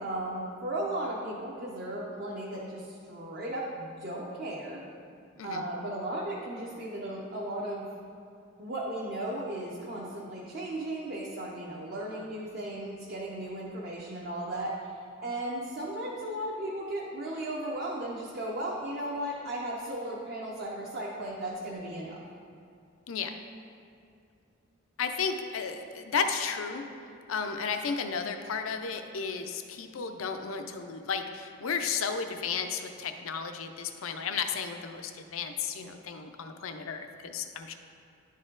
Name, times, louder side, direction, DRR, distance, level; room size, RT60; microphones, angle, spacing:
voice 1, 0.0-4.8 5.4-7.9 8.6-22.2, right 1 dB, 50° right, -4 dB, 0.8 m, -36 dB
voice 2, 25.0-26.8 27.3-37.7, left 6 dB, 75° left, 7 dB, 0.5 m, -33 dB
11.0 x 4.2 x 3.8 m, 2.4 s
head